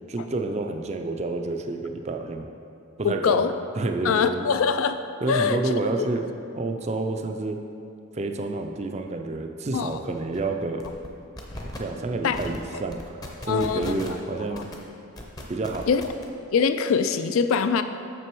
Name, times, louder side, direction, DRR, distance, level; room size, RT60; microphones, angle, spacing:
voice 1, 0.1-2.5 3.0-3.4 3.8-4.5 5.2-6.3 6.5-7.6 8.1-10.8 11.8-13.0 13.4-14.6 15.5-15.9, right 2 dB, 30° right, 4 dB, 0.4 m, -29 dB
voice 2, 3.0-3.5 4.0-5.0 5.3-6.0 9.7-10.0 12.2-12.4 13.5-14.0 14.5-14.6 15.9-16.0 16.5-17.8, left 6 dB, 75° left, 10 dB, 0.4 m, -23 dB
sound 1, 9.7-9.8 10.1-10.4 10.8-11.1 11.4-11.8 12.3-12.6 12.9-14.2 14.5-14.7 15.2-16.2, left 1 dB, 15° left, 0.6 m, -37 dB
6.7 x 6.1 x 4.6 m, 2.5 s
head